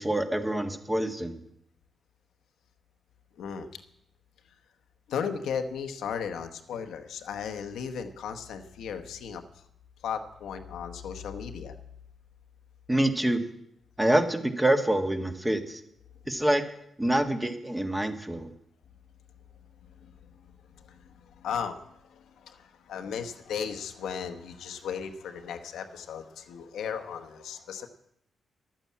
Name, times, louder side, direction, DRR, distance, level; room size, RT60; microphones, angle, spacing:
voice 1, 0.0-1.4 12.9-13.4 14.0-15.8 16.3-16.6 17.0-18.5, right 1 dB, 10° right, 6 dB, 1.5 m, -26 dB
voice 2, 3.4-3.7 5.1-9.4 10.0-11.7 20.0-20.1 20.4-27.9, left 7 dB, 90° left, 6 dB, 1.1 m, -36 dB
11.5 x 8.9 x 8.5 m, 0.75 s
cardioid pair, 85°, 0 cm